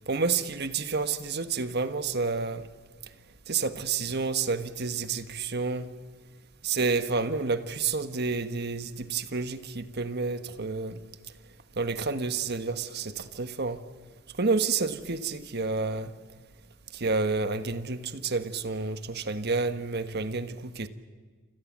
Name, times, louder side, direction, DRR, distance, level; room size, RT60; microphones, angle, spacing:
voice 1, 0.1-2.7 3.5-5.9 6.6-11.0 11.8-13.8 14.4-16.1 16.9-20.9, right 4 dB, 55° right, 10 dB, 1.4 m, -29 dB
28.5 x 26.5 x 7.5 m, 1.5 s
head